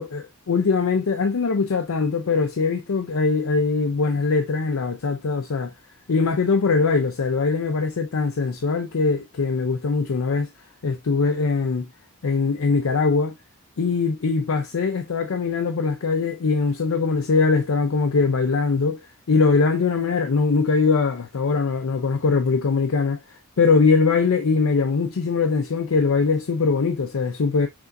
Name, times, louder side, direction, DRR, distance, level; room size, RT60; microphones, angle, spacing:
voice 1, 0.0-5.7 6.1-10.5 10.8-11.9 12.2-13.4 13.8-27.7, left 4 dB, 85° left, 0.5 m, -22 dB
6.0 x 2.6 x 2.6 m
head